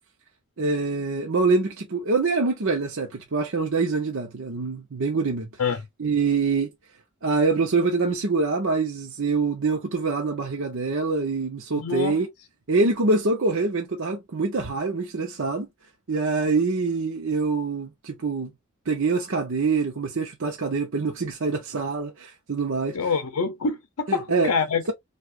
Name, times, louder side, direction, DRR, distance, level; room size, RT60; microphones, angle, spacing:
voice 1, 0.6-5.5 6.0-6.7 7.2-12.3 12.7-15.7 16.1-18.5 18.9-23.0 24.1-24.5, right 4 dB, 60° right, 0.7 m, -25 dB
voice 2, 11.8-12.2 22.9-24.8, left 5 dB, 80° left, 0.6 m, -26 dB
4.7 x 2.3 x 2.4 m
head